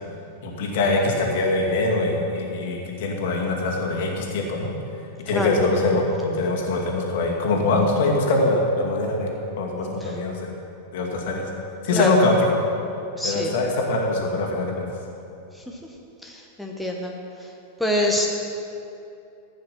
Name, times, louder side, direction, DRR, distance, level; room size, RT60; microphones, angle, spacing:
voice 1, 0.4-4.7 5.2-6.0 6.3-9.3 9.6-10.5 10.9-11.4 11.8-12.4 13.2-14.9, left 2 dB, 55° left, 0 dB, 2.3 m, -23 dB
voice 2, 9.8-10.1 11.9-12.2 13.2-13.5 15.5-15.8 16.2-17.1 17.4-17.5 17.8-18.3, left 1 dB, ahead, -1 dB, 1.3 m, -26 dB
15.5 x 9.0 x 5.9 m, 2.7 s
figure-of-eight pair, 90°, 0 cm